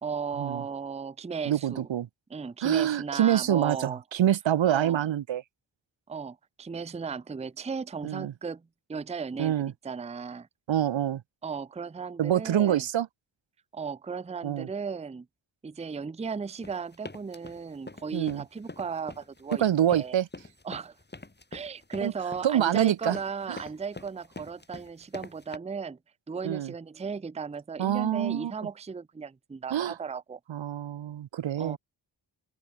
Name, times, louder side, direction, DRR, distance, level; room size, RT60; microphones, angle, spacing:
voice 1, 0.0-1.9 2.3-4.0 4.6-5.0 6.1-9.6 9.8-10.5 11.4-12.8 13.7-15.3 15.6-20.2 20.6-21.0 21.5-26.0 26.3-30.4 31.6-31.8, right 5 dB, 15° right, 0.5 m, -36 dB
voice 2, 1.4-2.1 2.6-5.4 8.0-8.3 9.4-9.7 10.7-11.2 12.2-13.1 14.4-14.7 18.1-18.4 19.6-20.3 22.0-22.1 22.4-23.2 23.5-23.6 26.4-26.7 27.8-28.5 29.7-30.0 30.5-31.8, right 11 dB, 85° right, 1.3 m, -26 dB
sound 1, 16.6-25.6, left 2 dB, 25° left, 5.6 m, -44 dB
open air
cardioid pair, 80°, 44 cm